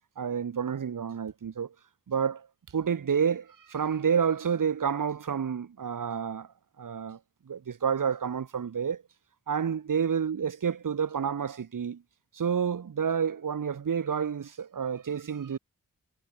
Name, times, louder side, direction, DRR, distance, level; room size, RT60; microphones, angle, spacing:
voice 1, 0.2-1.7 2.1-2.5 2.7-6.5 6.8-7.2 7.5-9.0 9.5-12.0 12.3-15.6, right 7 dB, 80° right, 1.8 m, -29 dB
wide cardioid pair, 95°, 32 cm